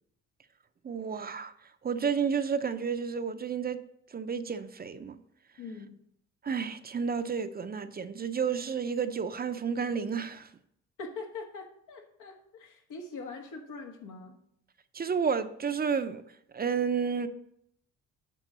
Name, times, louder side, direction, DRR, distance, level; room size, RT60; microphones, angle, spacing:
voice 1, 0.8-1.5 1.8-3.8 4.1-5.2 6.4-10.5 14.9-16.2 16.5-17.3, right 6 dB, 30° right, 0.6 m, -31 dB
voice 2, 5.6-5.9 11.0-14.3, left 4 dB, 80° left, 1.6 m, -42 dB
9.1 x 3.8 x 6.7 m
cardioid pair, 90°, 30 cm